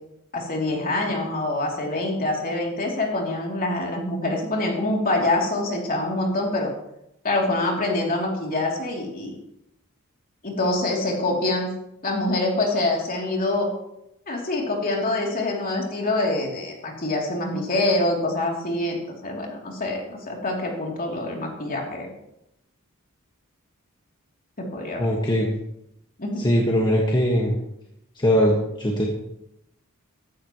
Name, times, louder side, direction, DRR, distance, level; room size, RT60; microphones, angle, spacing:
voice 1, 0.3-6.7 7.2-9.4 10.4-11.7 12.0-13.7 14.3-22.1 24.6-25.0 26.2-26.5, left 2 dB, 40° left, -1 dB, 3.1 m, -25 dB
voice 2, 25.0-25.5 26.4-27.5 28.2-29.1, equal, 20° left, -2 dB, 1.6 m, -21 dB
15.0 x 13.0 x 3.1 m, 0.82 s
head